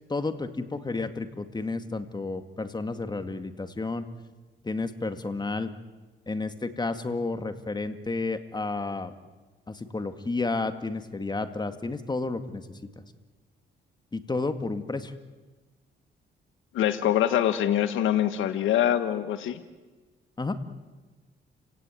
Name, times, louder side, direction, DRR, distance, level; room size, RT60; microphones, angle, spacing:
voice 1, 0.1-4.1 4.6-5.7 6.3-9.1 9.7-12.7 14.1-15.1 20.4-20.6, left 3 dB, 20° left, 9 dB, 2.1 m, -31 dB
voice 2, 16.7-19.6, left 11 dB, 80° left, 11 dB, 1.4 m, -24 dB
30.0 x 17.0 x 9.3 m, 1.3 s
cardioid pair, 90°, 20 cm